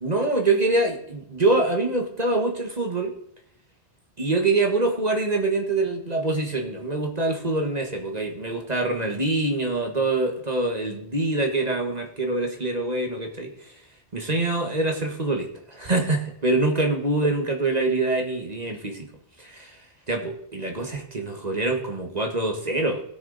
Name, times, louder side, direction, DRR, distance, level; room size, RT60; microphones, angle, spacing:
voice 1, 0.0-3.1 4.2-13.5 14.1-19.1 19.4-19.8 20.1-23.0, right 2 dB, 35° right, 2 dB, 1.7 m, -25 dB
18.5 x 6.4 x 4.1 m, 0.72 s
omnidirectional pair, 1.2 m